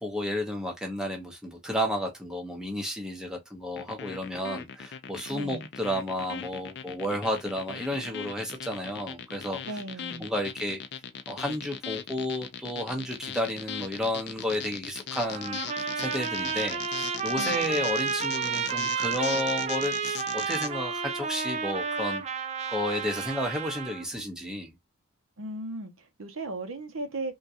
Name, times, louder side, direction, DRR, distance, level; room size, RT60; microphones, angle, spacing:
voice 1, 0.0-9.8 10.2-10.8 11.3-15.6 16.0-22.2 22.7-24.7, left 1 dB, 5° right, 0.8 m, -32 dB
sound 1, 3.8-20.7, left 8 dB, 55° left, 0.4 m, -39 dB
voice 2, 5.3-5.7 9.7-10.3 17.4-17.8 25.4-27.3, right 2 dB, 85° right, 0.8 m, -37 dB
Trumpet, 15.1-24.1, right 6 dB, 30° right, 0.5 m, -31 dB
3.6 x 2.4 x 2.8 m
head